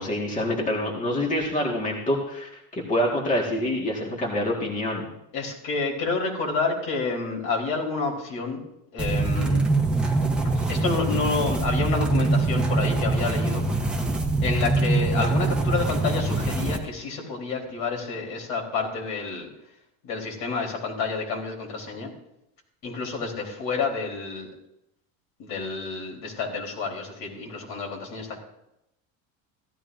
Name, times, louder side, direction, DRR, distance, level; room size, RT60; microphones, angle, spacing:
voice 1, 0.0-5.1, left 1 dB, 20° left, -1 dB, 1.7 m, -26 dB
voice 2, 5.3-8.6 8.9-9.6 10.7-13.6 14.4-19.5 20.0-22.1 22.8-24.5 25.4-28.4, left 4 dB, 70° left, 0 dB, 3.7 m, -29 dB
sound 1, 9.0-16.8, right 2 dB, 5° right, 1.0 m, -24 dB
15.5 x 13.0 x 2.6 m, 0.84 s
cardioid pair, 155°, 38 cm